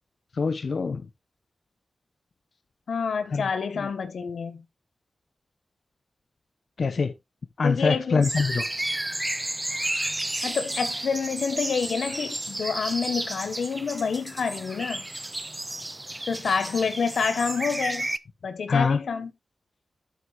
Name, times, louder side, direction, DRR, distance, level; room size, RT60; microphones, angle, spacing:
voice 1, 0.4-1.0 3.3-3.5 3.8-3.9 6.8-7.1 7.6-8.6 18.7-19.0, left 4 dB, 60° left, 0.8 m, -24 dB
voice 2, 2.9-4.6 7.6-8.2 10.4-15.0 16.3-18.1 18.4-19.3, left 5 dB, 85° left, 1.1 m, -28 dB
sound 1, 8.2-18.2, right 1 dB, 15° right, 0.4 m, -32 dB
9.6 x 7.9 x 2.4 m
wide cardioid pair, 115°, 0 cm